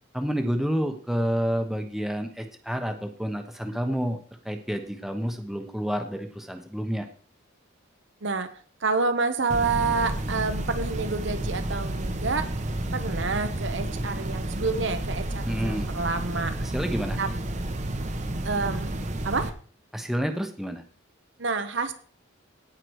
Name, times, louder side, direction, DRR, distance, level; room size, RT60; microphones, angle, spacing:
voice 1, 0.1-4.2 4.4-7.1 15.4-15.9 16.6-17.2 19.9-20.8, equal, ahead, 5 dB, 1.1 m, -29 dB
voice 2, 8.8-12.5 12.9-16.5 17.2-17.3 18.4-18.9 19.2-19.5 21.4-21.9, right 4 dB, 65° right, 7 dB, 1.0 m, -28 dB
sound 1, 9.5-19.5, right 1 dB, 35° right, 1.0 m, -31 dB
17.0 x 5.9 x 4.8 m, 0.43 s
head